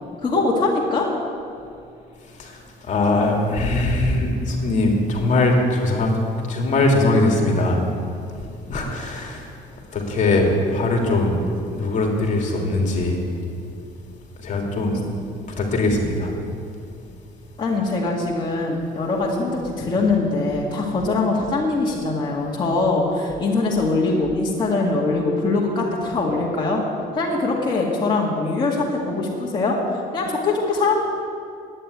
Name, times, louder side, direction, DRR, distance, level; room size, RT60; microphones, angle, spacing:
voice 1, 0.2-1.1 17.6-26.8 27.1-29.8 30.1-31.0, left 3 dB, 25° left, -4 dB, 2.1 m, -22 dB
voice 2, 2.9-6.1 6.5-7.8 8.7-9.5 9.9-11.4 11.7-13.2 14.4-15.0 15.6-16.3, left 2 dB, 45° left, 1 dB, 2.5 m, -21 dB
11.0 x 9.1 x 9.4 m, 2.5 s
cardioid pair, 110°, 17 cm